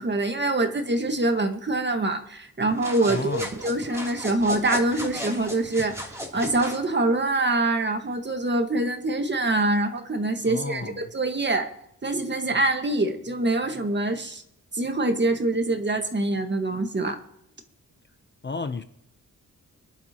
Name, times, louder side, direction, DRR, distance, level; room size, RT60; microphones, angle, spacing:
voice 1, 0.0-11.7 12.0-14.4 14.7-17.2, right 2 dB, 30° right, 1.6 m, -25 dB
sound 1, 2.7-6.8, equal, 10° right, 3.2 m, -36 dB
voice 2, 3.1-3.5 10.4-11.1 18.4-18.8, left 4 dB, 30° left, 0.8 m, -32 dB
25.0 x 11.5 x 3.0 m
wide cardioid pair, 115°, 34 cm